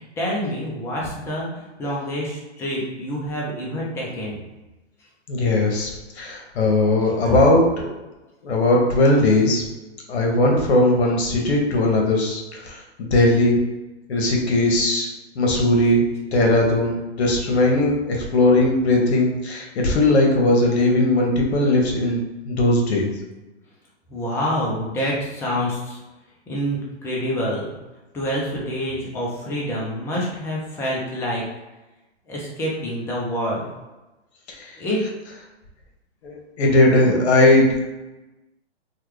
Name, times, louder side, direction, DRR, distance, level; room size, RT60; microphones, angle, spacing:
voice 1, 0.0-4.4 7.3-7.4 24.1-26.0 26.5-27.7 28.1-31.4 32.3-33.7 34.8-35.0 36.9-37.2, equal, 10° left, -4 dB, 0.4 m, -27 dB
voice 2, 5.3-5.9 6.2-7.9 8.4-9.6 10.1-13.6 14.1-15.1 15.3-16.0 16.3-23.1 34.6-34.7 36.2-37.8, left 2 dB, 70° left, 0 dB, 1.0 m, -18 dB
3.2 x 2.3 x 3.1 m, 1.1 s
hypercardioid pair, 130°, 34 cm